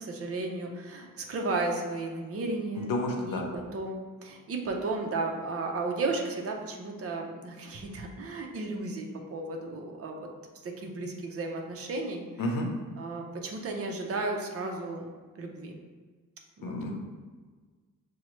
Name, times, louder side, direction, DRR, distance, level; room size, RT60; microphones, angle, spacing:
voice 1, 0.0-2.9 3.2-9.1 9.3-10.3 10.6-12.2 13.0-15.0 15.4-15.8 16.6-16.7, right 3 dB, 45° right, 2 dB, 0.6 m, -34 dB
voice 2, 2.8-3.4 12.4-12.7 16.6-16.9, left 1 dB, 80° left, 1 dB, 0.7 m, -30 dB
6.0 x 2.1 x 3.1 m, 1.4 s
wide cardioid pair, 160°, 34 cm